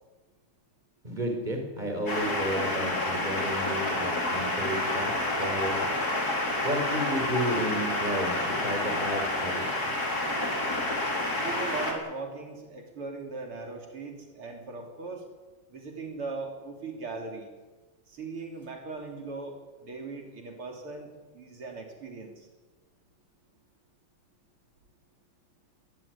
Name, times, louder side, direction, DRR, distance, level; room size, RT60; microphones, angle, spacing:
voice 1, 1.0-5.1 5.4-5.9 6.6-9.9, equal, 20° right, 4 dB, 5.1 m, -32 dB
sound 1, 2.1-11.9, left 1 dB, 45° left, 4.5 m, -29 dB
voice 2, 11.4-15.2 15.7-17.5 18.1-19.6 19.8-22.5, right 3 dB, 75° right, 2 dB, 4.1 m, -39 dB
21.5 x 16.0 x 9.7 m, 1.2 s
omnidirectional pair, 2.4 m